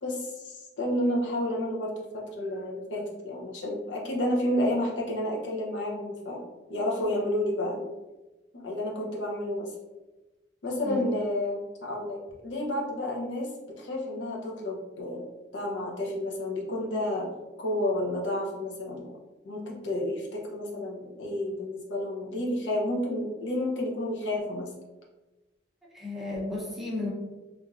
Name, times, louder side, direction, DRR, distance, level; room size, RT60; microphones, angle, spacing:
voice 1, 0.0-6.4 6.7-7.9 8.5-9.7 10.6-15.3 15.5-17.3 17.6-19.1 19.4-24.7, left 1 dB, 70° left, -2 dB, 0.6 m, -30 dB
voice 2, 25.9-27.1, left 2 dB, ahead, -5 dB, 0.6 m, -33 dB
3.0 x 2.5 x 2.3 m, 1.1 s
head